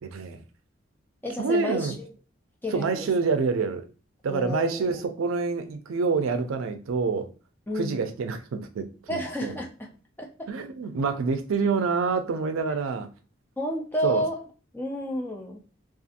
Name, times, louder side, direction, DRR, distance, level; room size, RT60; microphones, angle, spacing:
voice 1, 0.0-0.4 1.4-2.0 2.7-3.8 4.2-7.3 7.7-9.6 10.5-13.1 14.0-14.2, right 4 dB, 80° right, 7 dB, 0.4 m, -27 dB
voice 2, 1.2-2.1 2.6-3.1 4.3-5.0 7.7-8.0 9.1-9.9 10.2-10.5 13.6-14.4 14.7-15.6, equal, 10° left, -1 dB, 0.4 m, -31 dB
2.6 x 2.4 x 2.5 m, 0.35 s
head